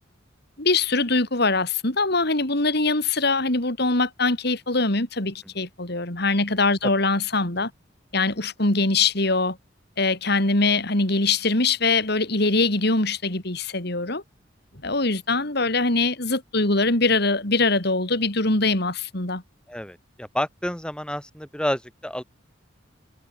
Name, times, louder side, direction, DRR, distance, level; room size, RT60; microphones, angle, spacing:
voice 1, 0.6-7.7 8.1-9.6 10.0-14.2 14.8-19.4, left 3 dB, 60° left, 3.9 m, -22 dB
voice 2, 19.7-22.2, equal, 5° left, 7.7 m, -29 dB
head